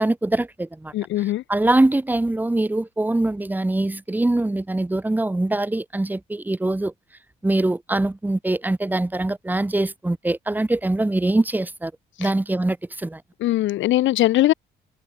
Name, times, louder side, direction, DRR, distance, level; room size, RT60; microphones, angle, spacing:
voice 1, 0.0-6.9 7.4-11.9 12.2-13.2, right 2 dB, 10° right, 0.7 m, -23 dB
voice 2, 0.9-1.4 13.4-14.5, left 15 dB, 75° left, 0.6 m, -20 dB
cardioid pair, 90°, 20 cm